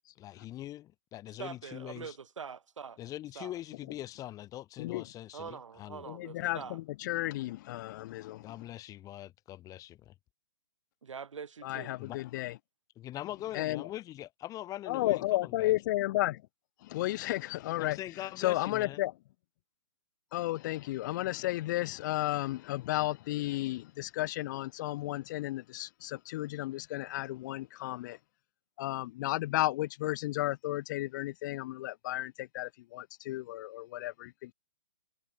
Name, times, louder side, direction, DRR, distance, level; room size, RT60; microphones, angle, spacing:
voice 1, 0.2-2.2 3.0-6.1 8.4-10.1 12.0-12.2 13.0-15.8 17.0-17.1 17.8-19.0, left 14 dB, 20° left, 4.2 m, -43 dB
voice 2, 1.4-3.0 3.4-3.6 5.3-6.8 11.0-12.0, right 6 dB, 65° right, 5.6 m, -44 dB
voice 3, 6.1-8.5 11.6-12.5 13.5-13.9 14.9-16.4 16.8-18.0 18.4-19.1 20.3-28.2 28.8-34.5, left 17 dB, 35° left, 1.0 m, -33 dB
figure-of-eight pair, 130°, 17 cm